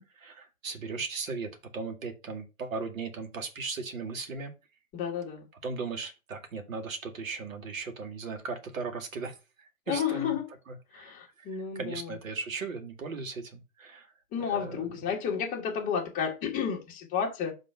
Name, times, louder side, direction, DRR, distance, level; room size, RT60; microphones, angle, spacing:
voice 1, 0.1-4.5 5.6-10.3 10.7-14.1 14.5-15.0, right 4 dB, 70° right, 2.2 m, -37 dB
voice 2, 4.9-5.5 9.9-10.5 10.9-12.1 14.3-17.5, left 7 dB, 20° left, 1.6 m, -31 dB
6.1 x 3.6 x 5.5 m
hypercardioid pair, 140°, 42 cm